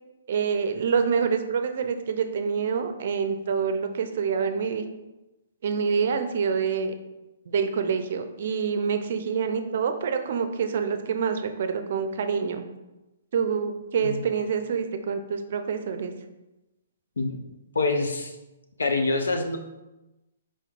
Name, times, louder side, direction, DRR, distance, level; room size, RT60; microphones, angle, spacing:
voice 1, 0.3-4.9 5.6-7.0 7.5-12.6 13.3-16.1, right 6 dB, 60° right, 8 dB, 0.5 m, -26 dB
voice 2, 17.7-18.3 18.8-19.6, left 3 dB, 80° left, 5 dB, 0.5 m, -25 dB
4.4 x 4.3 x 2.4 m, 1.0 s
hypercardioid pair, 130°, 0 cm